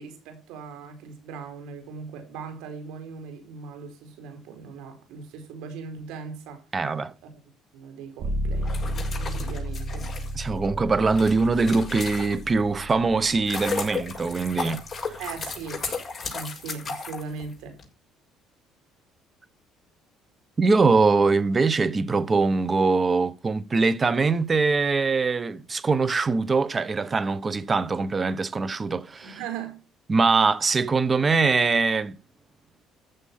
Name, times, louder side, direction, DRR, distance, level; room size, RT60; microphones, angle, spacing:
voice 1, 0.0-6.6 7.2-7.3 7.7-10.1 15.2-15.8 16.3-17.8 29.2-29.8, right 5 dB, 85° right, 4.8 m, -39 dB
voice 2, 6.7-7.1 10.3-14.8 20.6-29.4 30.1-32.1, right 4 dB, 30° right, 1.2 m, -22 dB
sound 1, 8.2-15.9, equal, 55° right, 5.2 m, -33 dB
sound 2, 8.6-12.7 13.1-17.8, left 4 dB, 30° left, 6.5 m, -34 dB
15.0 x 7.3 x 5.7 m
cardioid pair, 95°, 0 cm